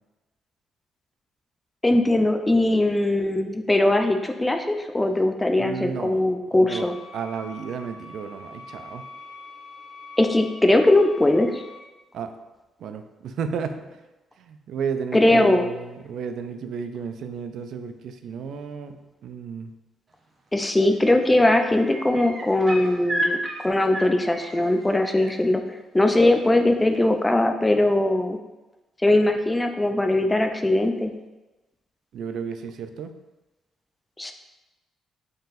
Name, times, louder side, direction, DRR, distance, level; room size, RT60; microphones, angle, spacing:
voice 1, 1.8-7.0 10.2-11.6 15.1-15.6 20.5-23.4 23.6-25.6 25.9-28.4 29.0-31.1 34.2-34.3, left 1 dB, 15° left, 5 dB, 0.4 m, -20 dB
voice 2, 5.6-9.0 12.1-12.3 12.8-13.8 14.4-19.7 32.1-33.1, right 6 dB, 70° right, 8 dB, 0.3 m, -33 dB
sound 1, 6.7-11.8, left 3 dB, 70° left, 1.1 m, -44 dB
sound 2, 20.6-20.9 21.2-25.3 26.9-27.0, right 1 dB, 35° right, 0.6 m, -32 dB
4.0 x 3.8 x 2.6 m, 1.1 s
cardioid pair, 90°, 0 cm